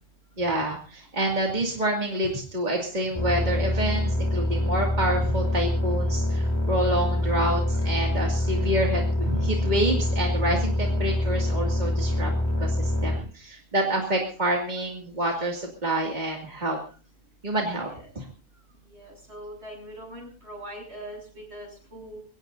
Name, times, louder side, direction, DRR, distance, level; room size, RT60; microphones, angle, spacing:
voice 1, 0.4-12.3 12.6-16.8 17.4-18.3, right 1 dB, 40° right, -1 dB, 2.6 m, -28 dB
sound 1, 3.1-13.2, left 1 dB, 25° left, 2.9 m, -25 dB
voice 2, 18.9-22.2, right 1 dB, 70° right, 1 dB, 7.9 m, -42 dB
22.5 x 18.5 x 2.7 m, 0.38 s
omnidirectional pair, 1.1 m